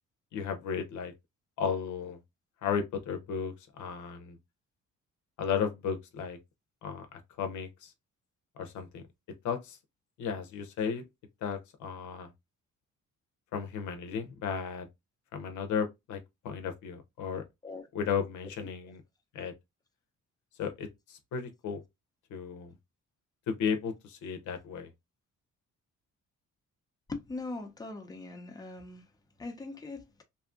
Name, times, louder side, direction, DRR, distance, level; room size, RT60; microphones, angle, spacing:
voice 1, 0.3-1.1 1.6-2.2 2.6-4.4 5.4-6.4 6.8-7.9 8.6-9.0 9.4-9.8 10.2-11.0 11.4-12.3 13.5-14.9 15.3-16.2 16.4-17.4 17.9-19.0 19.3-19.5 20.6-21.8 22.3-22.7 23.5-24.9, left 6 dB, 75° left, 0.7 m, -34 dB
voice 2, 18.6-18.9 27.1-29.0 29.4-30.2, left 3 dB, 15° left, 0.6 m, -41 dB
2.7 x 2.4 x 2.5 m
cardioid pair, 90°, 30 cm